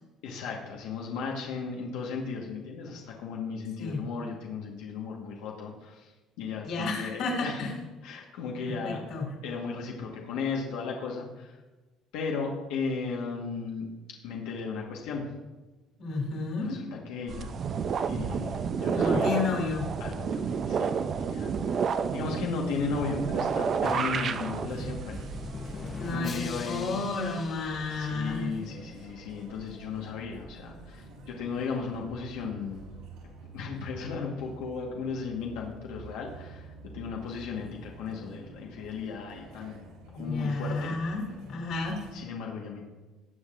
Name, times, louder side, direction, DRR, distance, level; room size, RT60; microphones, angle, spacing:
voice 1, 0.2-6.1 6.4-7.7 8.0-9.0 9.4-11.6 12.1-13.9 14.2-15.3 16.6-17.5 18.1-19.4 20.0-20.9 21.2-25.2 26.1-26.9 27.9-32.8 33.5-39.8 40.1-40.9 42.1-42.8, left 5 dB, 90° left, -1 dB, 1.4 m, -35 dB
voice 2, 6.6-7.7 8.6-9.3 16.0-16.8 18.9-19.9 25.8-28.5 40.1-42.0, left 3 dB, 50° left, 1 dB, 2.4 m, -32 dB
sound 1, 17.3-26.1, right 6 dB, 35° right, 0.4 m, -30 dB
Drum, 23.8-28.7, left 4 dB, 25° left, 0.6 m, -41 dB
sound 2, 24.5-42.1, right 2 dB, 80° right, 3.5 m, -49 dB
18.5 x 7.7 x 2.5 m, 1.2 s
cardioid pair, 160°, 0 cm